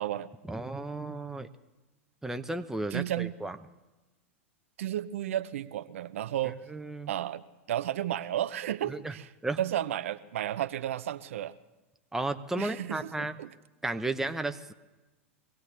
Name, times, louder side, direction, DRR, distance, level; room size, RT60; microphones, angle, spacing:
voice 1, 0.5-1.5 2.2-3.6 6.7-7.1 8.9-9.1 9.4-9.6 12.1-13.3 13.8-14.7, right 2 dB, 5° right, 7 dB, 0.8 m, -33 dB
voice 2, 2.9-3.3 4.8-6.6 7.1-9.3 9.6-11.5 12.6-13.5, right 12 dB, 70° right, 12 dB, 0.6 m, -33 dB
24.0 x 17.5 x 3.3 m, 1.1 s
hypercardioid pair, 100°, 7 cm